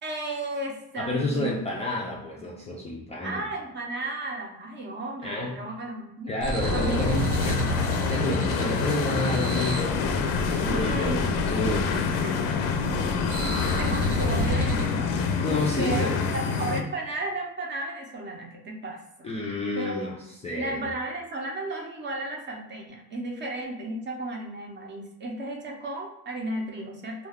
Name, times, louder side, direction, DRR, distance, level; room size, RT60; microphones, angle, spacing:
voice 1, 0.0-1.6 1.9-2.2 2.5-2.9 3.2-6.3 6.7-7.0 7.4-7.5 10.7-11.4 12.2-12.4 13.8-15.1 15.8-19.3 19.7-20.0 20.6-27.3, right 2 dB, 30° right, 0 dB, 0.5 m, -34 dB
voice 2, 1.0-3.4 5.2-5.5 6.3-7.7 8.1-10.0 10.5-11.9 15.4-16.3 19.2-20.1 20.4-20.9, left 2 dB, 20° left, -4 dB, 0.3 m, -30 dB
sound 1, 6.4-14.9, right 1 dB, 75° right, 0.8 m, -31 dB
sound 2, 6.6-16.8, left 5 dB, 75° left, 0.5 m, -27 dB
2.3 x 2.2 x 3.4 m, 0.93 s
cardioid pair, 120°, 40 cm